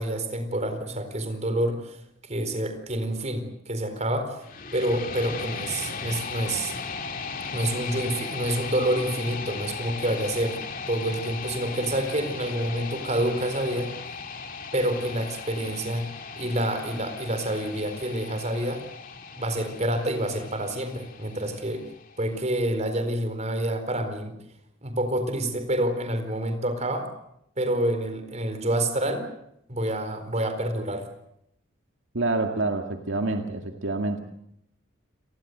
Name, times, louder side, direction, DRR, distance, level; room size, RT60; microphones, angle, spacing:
voice 1, 0.0-2.0 2.3-4.4 4.7-6.7 7.5-10.6 10.9-13.9 14.7-16.1 16.4-18.8 19.4-21.9 22.2-24.3 24.8-27.1 27.6-29.3 29.7-31.1, right 1 dB, 35° right, 8 dB, 4.3 m, -28 dB
sound 1, 4.4-22.4, left 5 dB, 45° left, 2.6 m, -37 dB
voice 2, 32.1-34.2, right 2 dB, 70° right, 4 dB, 2.1 m, -27 dB
29.5 x 19.5 x 7.9 m, 0.76 s
head